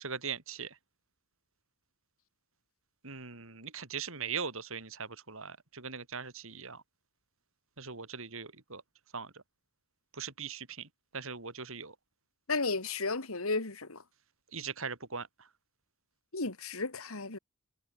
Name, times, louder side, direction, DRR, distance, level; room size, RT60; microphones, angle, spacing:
voice 1, 0.0-0.7 3.0-6.8 7.8-8.8 9.1-9.3 10.2-10.9 11.1-11.9 14.5-15.3, right 6 dB, 65° right, 4.0 m, -40 dB
voice 2, 12.5-14.0 16.3-17.4, left 3 dB, 70° left, 2.5 m, -33 dB
head